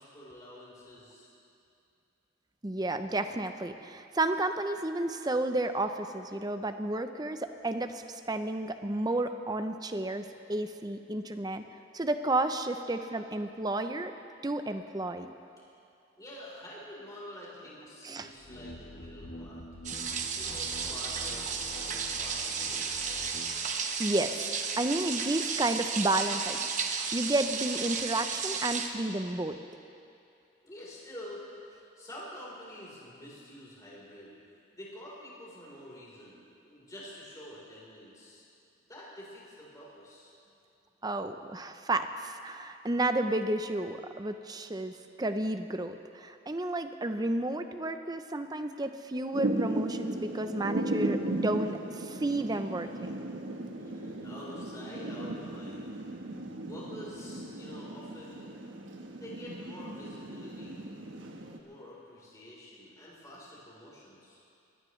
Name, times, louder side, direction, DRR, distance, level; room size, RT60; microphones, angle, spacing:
voice 1, 0.0-1.3 16.2-19.6 20.3-23.0 30.6-34.4 34.7-38.4 38.9-40.3 53.6-55.9 56.6-58.5 59.1-60.9 61.5-64.4, left 1 dB, 20° left, -6 dB, 3.9 m, -47 dB
voice 2, 2.6-11.6 11.9-14.1 14.4-15.3 18.0-18.3 24.0-24.5 24.8-26.6 26.9-29.6 41.0-53.2, right 2 dB, 20° right, 8 dB, 0.6 m, -32 dB
sound 1, 18.4-23.6, left 1 dB, 50° left, 1.1 m, -46 dB
sound 2, 19.8-28.9, right 5 dB, 40° right, 1.0 m, -33 dB
Thunder / Rain, 49.3-61.6, right 1 dB, 75° right, 1.2 m, -36 dB
22.0 x 17.5 x 3.2 m, 2.6 s
head